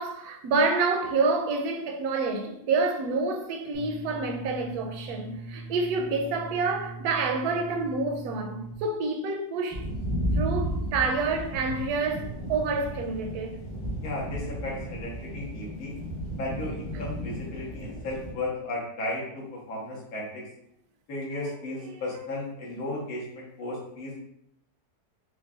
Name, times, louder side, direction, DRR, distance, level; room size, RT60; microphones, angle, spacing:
voice 1, 0.0-9.9 10.3-13.6 16.9-17.0 21.9-22.0, right 3 dB, 75° right, 1.1 m, -28 dB
sound 1, 3.7-8.7, right 2 dB, 50° left, 1.0 m, -41 dB
sound 2, 9.7-18.3, equal, 25° left, 0.7 m, -33 dB
voice 2, 14.0-15.9 16.4-20.4 21.1-24.2, left 2 dB, 65° left, 1.5 m, -35 dB
5.3 x 2.2 x 2.4 m
omnidirectional pair, 1.7 m